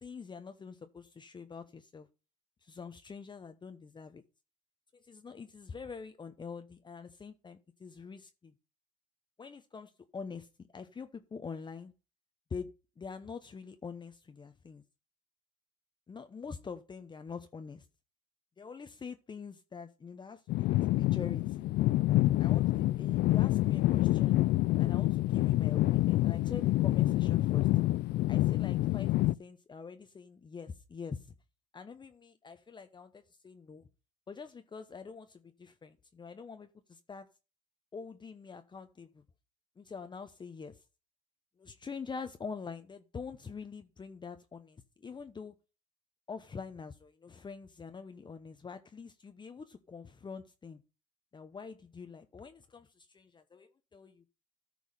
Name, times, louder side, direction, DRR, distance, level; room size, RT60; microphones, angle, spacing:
voice 1, 0.0-2.1 2.6-4.2 4.9-8.5 9.4-11.9 12.5-14.8 16.1-17.9 18.6-21.7 22.4-24.4 24.8-27.7 28.3-31.3 31.7-33.8 34.3-37.3 37.9-39.2 39.8-40.8 41.6-45.5 46.3-50.8 51.3-54.2, left 5 dB, 25° left, 0.9 m, -45 dB
sound 1, 20.5-29.3, left 16 dB, 55° left, 0.4 m, -27 dB
13.5 x 4.7 x 5.3 m
supercardioid pair, 90°, 19 cm